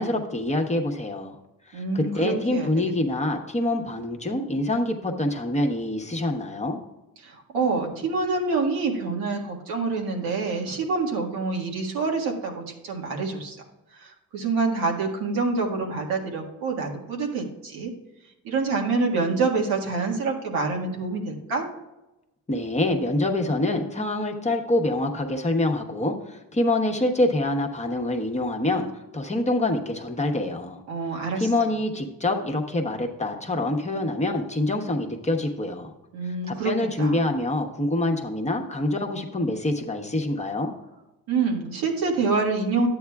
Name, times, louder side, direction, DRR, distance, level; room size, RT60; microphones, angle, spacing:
voice 1, 0.0-1.4 1.7-6.8 22.5-28.9 29.1-30.8 31.4-35.9 36.5-40.7, left 1 dB, 20° left, 2 dB, 1.1 m, -26 dB
voice 2, 1.7-2.7 7.2-13.6 13.9-17.9 18.4-21.7 30.9-31.5 36.1-36.7 37.0-37.3 41.3-42.9, right 4 dB, 90° right, 0 dB, 1.7 m, -26 dB
12.0 x 8.6 x 2.3 m, 0.98 s
cardioid pair, 95°, 35 cm